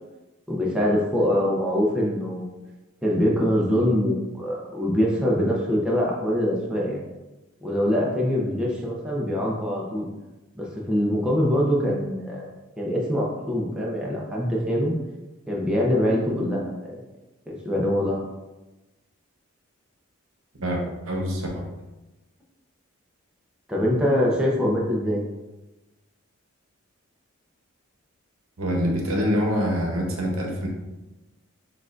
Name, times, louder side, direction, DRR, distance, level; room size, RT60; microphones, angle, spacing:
voice 1, 0.5-2.5 3.0-7.0 7.6-10.1 10.5-12.5 12.8-14.9 15.5-17.0 17.5-18.2 23.7-25.2, equal, 5° right, -4 dB, 0.6 m, -24 dB
voice 2, 20.6-21.7 28.6-30.7, equal, 75° right, 0 dB, 0.9 m, -25 dB
6.4 x 2.5 x 2.5 m, 1.1 s
head